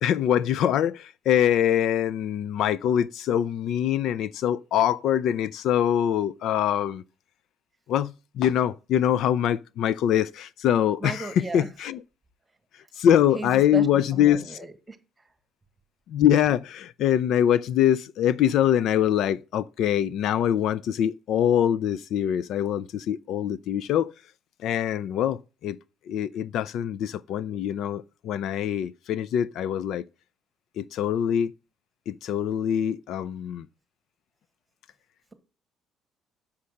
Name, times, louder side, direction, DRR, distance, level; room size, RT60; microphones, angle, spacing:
voice 1, 0.0-7.0 7.9-12.0 12.7-14.6 16.1-24.1 24.6-25.8 26.1-30.0 30.8-31.5 32.1-33.7, left 10 dB, 65° left, 0.3 m, -24 dB
voice 2, 11.0-11.7 13.3-13.9 14.1-15.0, right 3 dB, 10° right, 1.3 m, -35 dB
7.2 x 5.6 x 6.5 m
cardioid pair, 160°, 0 cm